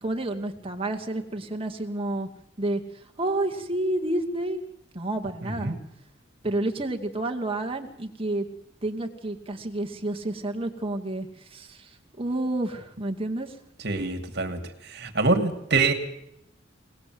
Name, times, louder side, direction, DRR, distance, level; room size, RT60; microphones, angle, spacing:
voice 1, 0.0-2.3 2.6-2.8 3.2-4.6 4.9-5.8 6.4-8.5 8.8-11.9 12.2-13.5, right 1 dB, 30° right, 4 dB, 2.4 m, -30 dB
voice 2, 5.4-5.7 13.8-15.9, right 3 dB, 60° right, 5 dB, 2.6 m, -25 dB
24.5 x 19.0 x 7.9 m, 0.77 s
head